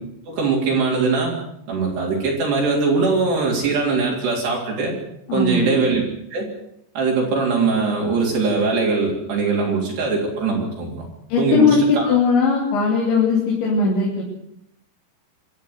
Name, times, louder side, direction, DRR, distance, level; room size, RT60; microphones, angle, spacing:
voice 1, 0.3-1.3 1.7-5.0 5.3-6.0 6.3-6.5 7.0-11.0 11.4-11.7 12.0-12.2, right 4 dB, 70° right, -2 dB, 5.7 m, -21 dB
voice 2, 5.3-5.7 11.3-14.2, left 5 dB, 85° left, -2 dB, 5.5 m, -18 dB
25.0 x 13.5 x 8.0 m, 0.75 s
omnidirectional pair, 5.1 m